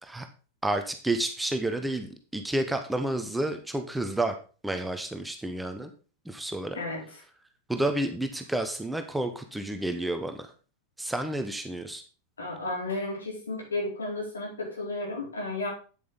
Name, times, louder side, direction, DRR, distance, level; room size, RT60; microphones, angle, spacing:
voice 1, 0.6-4.3 4.6-5.9 6.2-6.8 7.7-10.5 11.0-12.0, right 1 dB, 5° right, 6 dB, 1.0 m, -30 dB
voice 2, 6.7-7.2 12.4-15.7, left 2 dB, 75° left, -2 dB, 4.3 m, -33 dB
9.1 x 8.3 x 4.0 m, 0.37 s
figure-of-eight pair, 90°, 0 cm